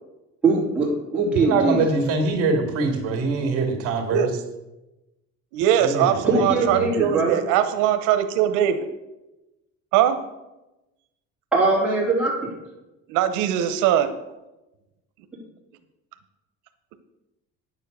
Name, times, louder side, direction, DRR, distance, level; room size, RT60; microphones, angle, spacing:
voice 1, 0.4-1.8 6.3-7.4 11.5-12.5, right 3 dB, 5° right, -7 dB, 3.6 m, -21 dB
voice 2, 1.3-4.3 5.8-6.5 6.8-6.9, right 3 dB, 50° right, 3 dB, 2.5 m, -24 dB
voice 3, 5.5-8.9 9.9-10.2 13.1-14.1, right 10 dB, 90° right, 9 dB, 0.9 m, -21 dB
9.5 x 7.4 x 6.8 m, 1.0 s
cardioid pair, 175°, 30 cm